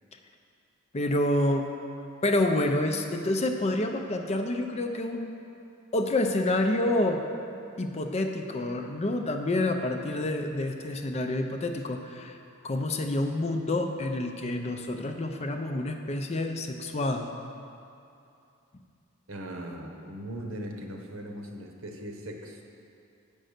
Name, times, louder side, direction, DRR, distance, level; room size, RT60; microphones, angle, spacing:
voice 1, 0.9-1.7 2.2-5.3 5.9-7.2 7.8-12.4 12.6-17.3, left 1 dB, 30° left, 5 dB, 0.5 m, -28 dB
voice 2, 19.3-22.6, equal, 65° right, 2 dB, 1.0 m, -39 dB
8.9 x 5.4 x 6.5 m, 2.6 s
head